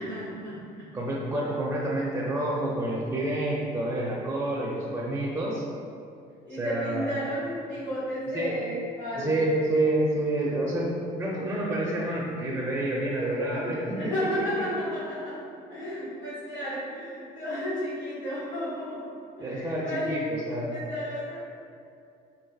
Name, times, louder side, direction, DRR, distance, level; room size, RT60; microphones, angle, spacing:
voice 1, 0.0-0.9 6.4-9.4 13.9-15.4 15.7-20.2 20.7-21.4, equal, 85° left, -15 dB, 1.5 m, -33 dB
voice 2, 0.9-5.6 6.6-7.2 8.3-8.5 9.2-14.1 19.4-20.2 20.5-20.8, right 1 dB, 10° right, -4 dB, 0.4 m, -28 dB
4.0 x 2.6 x 2.3 m, 2.5 s
cardioid pair, 110°, 17 cm